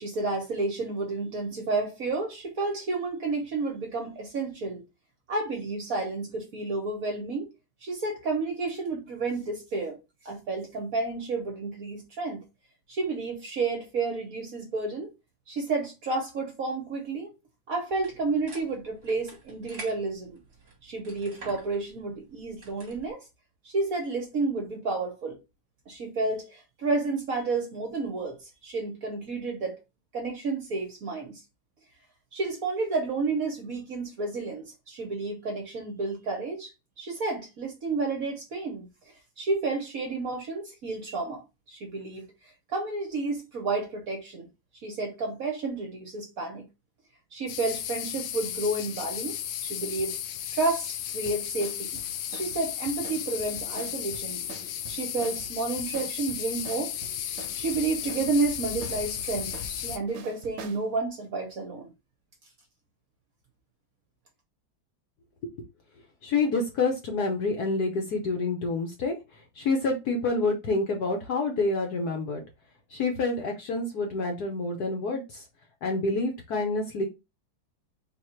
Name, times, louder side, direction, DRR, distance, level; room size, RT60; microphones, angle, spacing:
voice 1, 0.0-4.8 5.3-7.5 7.8-10.0 10.2-12.4 12.9-15.1 15.5-17.3 17.7-20.4 20.8-23.2 23.6-25.4 25.9-28.4 28.6-29.8 30.1-31.4 32.3-36.7 37.0-38.9 39.4-41.4 41.7-42.3 42.7-44.5 44.8-46.6 47.3-50.1 50.5-52.0 52.3-54.4 54.9-56.9 57.5-61.9, right 3 dB, 50° right, 1.2 m, -31 dB
sound 1, 17.9-23.1, right 3 dB, 35° right, 1.4 m, -48 dB
sound 2, 47.5-60.0, left 10 dB, 90° left, 0.9 m, -34 dB
sound 3, 51.3-60.9, right 7 dB, 75° right, 1.3 m, -45 dB
voice 2, 66.2-72.4 72.9-75.4 75.8-77.1, left 3 dB, 60° left, 1.1 m, -28 dB
4.0 x 2.5 x 4.4 m
omnidirectional pair, 2.3 m